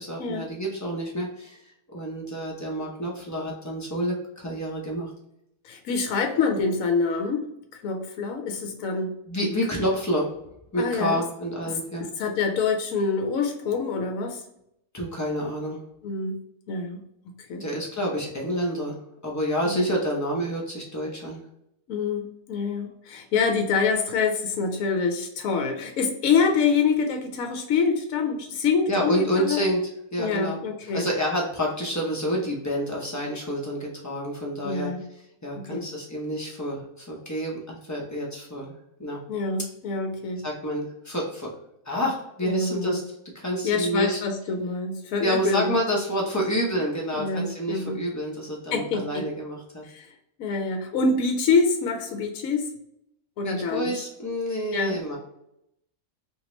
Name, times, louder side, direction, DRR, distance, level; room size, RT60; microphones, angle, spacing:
voice 1, 0.0-1.6 1.9-5.1 9.3-10.3 10.7-12.1 14.9-15.8 17.6-18.9 19.2-21.4 28.9-29.8 30.1-30.6 30.9-34.9 35.4-38.7 39.0-39.2 40.4-41.5 41.8-43.0 43.3-44.2 45.2-49.8 53.4-55.2, equal, 30° left, -2 dB, 0.3 m, -28 dB
voice 2, 5.6-7.4 7.8-9.2 10.7-11.2 11.7-14.4 16.0-16.4 16.7-17.6 19.6-19.8 21.9-29.1 29.5-29.6 30.2-31.1 34.6-35.0 35.6-35.9 39.3-40.4 42.4-43.0 43.6-45.8 47.1-48.0 48.7-49.3 49.8-50.1 50.4-52.7 53.4-54.0 54.7-55.0, left 4 dB, 70° left, 4 dB, 1.0 m, -26 dB
2.9 x 2.8 x 3.1 m, 0.79 s
omnidirectional pair, 1.6 m